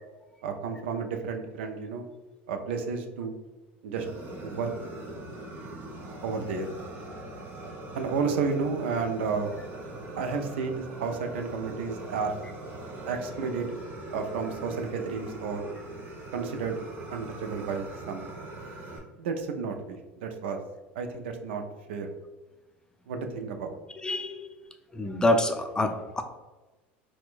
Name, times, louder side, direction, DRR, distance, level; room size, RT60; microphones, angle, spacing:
voice 1, 0.4-2.1 2.5-3.3 3.8-4.1 4.4-4.7 6.2-6.7 7.9-9.5 10.2-12.4 13.1-13.7 14.1-15.6 16.3-16.8 17.1-18.2 19.2-20.6 21.0-21.6 21.9-22.1 23.1-23.8, right 5 dB, 80° right, 5 dB, 0.5 m, -31 dB
Fire, 4.0-19.0, right 2 dB, 40° right, 1.1 m, -41 dB
voice 2, 24.0-24.5 24.9-26.2, left 1 dB, 10° left, 5 dB, 0.4 m, -26 dB
4.2 x 2.2 x 2.4 m, 1.2 s
hypercardioid pair, 90°, 6 cm